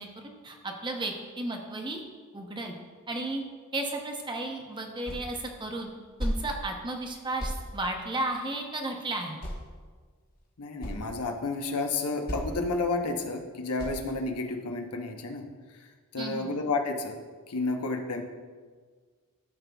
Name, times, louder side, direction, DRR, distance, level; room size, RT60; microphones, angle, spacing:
voice 1, 0.0-2.0 2.3-2.7 3.1-3.4 3.7-5.9 6.2-9.4 16.2-16.5, right 2 dB, 20° right, 2 dB, 0.7 m, -34 dB
sound 1, 5.1-5.4 5.7-6.4 6.8-7.0 7.4-7.6 8.8-8.9 9.4-9.8 10.3-10.4 10.6-11.0 11.8-11.9 12.3-12.6 13.0-13.2 13.8-14.1, equal, 45° left, 1.2 m, -34 dB
voice 2, 10.6-15.4 15.7-15.8 16.1-17.2 17.5-18.2, left 3 dB, 90° left, 3 dB, 0.8 m, -31 dB
13.0 x 5.2 x 2.3 m, 1.5 s
head